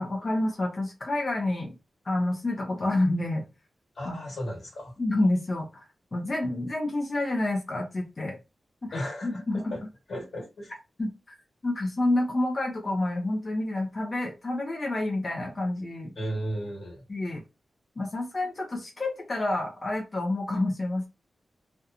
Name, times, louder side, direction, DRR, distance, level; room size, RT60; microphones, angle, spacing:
voice 1, 0.0-1.7 2.0-3.4 4.0-4.2 5.0-5.8 6.1-8.4 8.8-9.8 11.0-11.1 11.6-16.1 17.1-17.4 18.0-21.1, left 2 dB, 40° left, 0.6 m, -28 dB
voice 2, 3.9-4.9 8.9-9.4 9.7-9.8 10.1-10.7 16.1-17.0, equal, 75° left, 1.5 m, -34 dB
2.8 x 2.1 x 2.4 m
wide cardioid pair, 115°, 0 cm